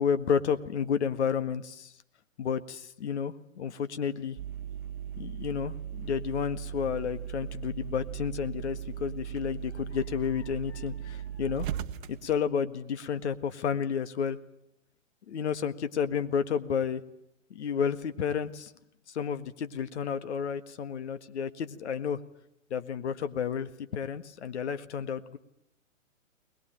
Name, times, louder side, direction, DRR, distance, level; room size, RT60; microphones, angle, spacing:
voice 1, 0.0-1.9 2.4-4.4 5.2-11.7 12.1-14.4 15.3-17.0 17.5-18.7 19.1-22.2 22.7-25.4, left 7 dB, 55° left, 11 dB, 1.8 m, -31 dB
sound 1, 4.4-12.4, right 10 dB, 40° right, 1.4 m, -38 dB
21.0 x 21.0 x 9.1 m, 0.79 s
hypercardioid pair, 130°, 39 cm